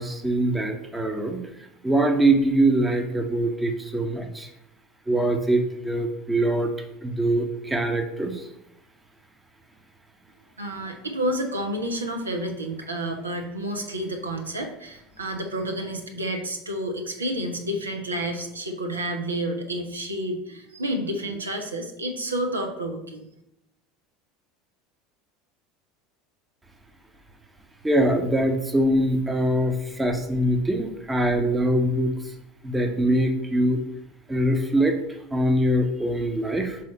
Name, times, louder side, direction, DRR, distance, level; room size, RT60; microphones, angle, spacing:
voice 1, 0.0-1.4 1.8-4.5 5.1-6.7 7.0-8.5 27.8-32.1 32.6-33.8 34.3-35.0 35.3-36.8, right 1 dB, 10° right, 5 dB, 0.9 m, -23 dB
voice 2, 10.6-23.3, right 1 dB, 80° right, 4 dB, 0.7 m, -30 dB
6.3 x 4.1 x 4.1 m, 0.83 s
figure-of-eight pair, 70°, 0 cm